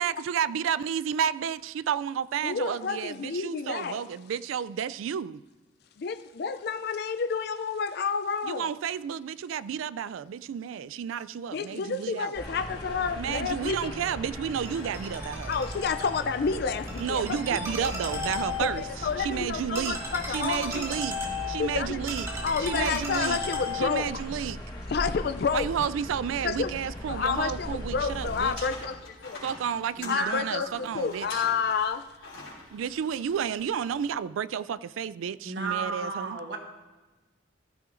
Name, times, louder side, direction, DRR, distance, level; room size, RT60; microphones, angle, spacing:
voice 1, 0.0-5.4 8.4-12.4 13.2-15.6 17.0-18.8 19.2-20.0 20.3-21.2 21.5-22.3 22.6-23.4 23.7-24.6 25.5-28.7 29.4-31.4 32.7-36.4, right 8 dB, 80° right, 0.3 m, -31 dB
voice 2, 2.4-4.0 6.0-8.7 11.5-14.1 15.5-17.4 17.8-17.9 18.6-20.9 21.6-22.0 22.4-24.1 24.9-25.9 26.4-26.7 27.1-29.4 30.1-32.0, left 5 dB, 50° left, 0.4 m, -30 dB
sound 1, 12.3-28.5, left 1 dB, 20° left, 1.2 m, -39 dB
Ringtone, 14.6-24.1, left 2 dB, 15° right, 2.0 m, -36 dB
sound 2, 27.9-34.1, left 3 dB, 85° left, 4.0 m, -45 dB
voice 3, 30.0-30.9 35.4-36.6, right 4 dB, 60° right, 1.2 m, -34 dB
15.0 x 13.0 x 2.6 m
head